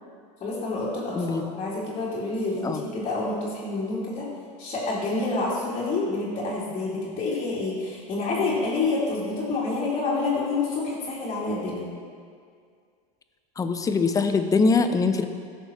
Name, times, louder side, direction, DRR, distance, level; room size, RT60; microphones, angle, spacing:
voice 1, 0.4-4.3 4.6-11.8, left 3 dB, 35° left, -10 dB, 2.4 m, -28 dB
voice 2, 13.6-15.2, left 4 dB, 15° left, 8 dB, 0.6 m, -22 dB
14.5 x 6.5 x 3.1 m, 2.1 s
supercardioid pair, 120°, 20 cm